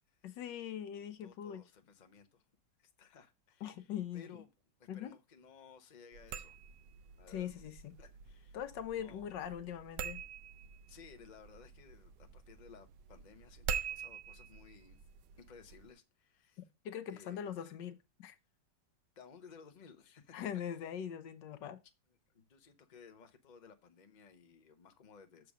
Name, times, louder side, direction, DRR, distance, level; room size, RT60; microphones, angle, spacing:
voice 1, 0.2-1.6 3.6-4.4 4.9-5.1 7.3-8.0 8.5-10.2 16.8-18.4 20.3-21.8, left 9 dB, 85° left, 1.5 m, -42 dB
voice 2, 1.2-2.4 2.8-4.5 4.8-6.6 7.2-7.7 8.0-8.6 8.9-9.4 10.9-15.0 15.4-16.6 17.1-17.8 19.2-20.4 22.3-25.5, left 6 dB, 35° left, 0.9 m, -58 dB
sound 1, 6.1-15.9, right 7 dB, 85° right, 1.3 m, -45 dB
6.9 x 4.7 x 6.2 m
omnidirectional pair, 1.9 m